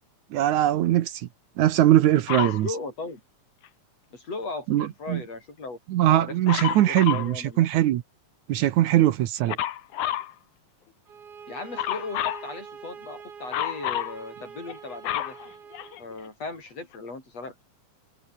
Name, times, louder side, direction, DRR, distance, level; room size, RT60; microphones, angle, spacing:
voice 1, 0.3-1.3 1.6-2.7 4.7-5.2 5.9-8.0 8.5-9.6, right 13 dB, 75° right, 2.3 m, -21 dB
Dog, 2.3-2.6 6.5-7.3 9.5-10.3 11.8-12.5 13.5-14.2 14.7-16.2 16.9-17.0, left 12 dB, 70° left, 2.7 m, -29 dB
voice 2, 2.4-3.2 4.1-5.8 6.1-6.4 6.7-7.7 11.5-15.4 16.0-17.5, left 3 dB, 50° left, 8.1 m, -37 dB
sound 1, 11.1-16.0, right 6 dB, 50° right, 3.4 m, -44 dB
omnidirectional pair, 3.6 m